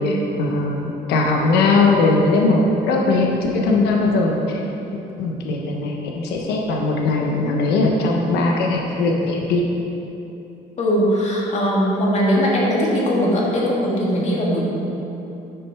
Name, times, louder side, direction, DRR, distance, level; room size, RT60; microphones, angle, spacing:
voice 1, 0.0-4.6 4.9-9.6, left 3 dB, 85° left, 0 dB, 1.0 m, -19 dB
voice 2, 10.8-14.8, equal, 45° left, -4 dB, 2.2 m, -20 dB
9.6 x 6.4 x 4.7 m, 2.9 s
cardioid pair, 110°, 17 cm